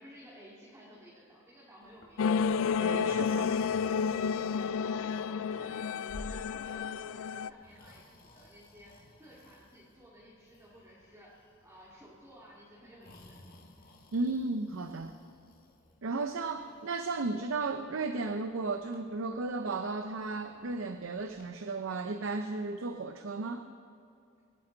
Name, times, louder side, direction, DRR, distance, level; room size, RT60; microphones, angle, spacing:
voice 1, 0.0-2.4 2.7-3.6 4.5-13.7, equal, 15° right, -7 dB, 2.3 m, -55 dB
Breathing, 1.8-21.5, left 1 dB, 45° left, 1.6 m, -56 dB
sound 1, 2.2-7.5, left 6 dB, 85° left, 0.3 m, -31 dB
voice 2, 2.8-3.5 14.1-15.1 16.0-23.7, right 3 dB, 75° right, 7 dB, 0.6 m, -34 dB
25.5 x 9.0 x 3.9 m, 2.6 s
head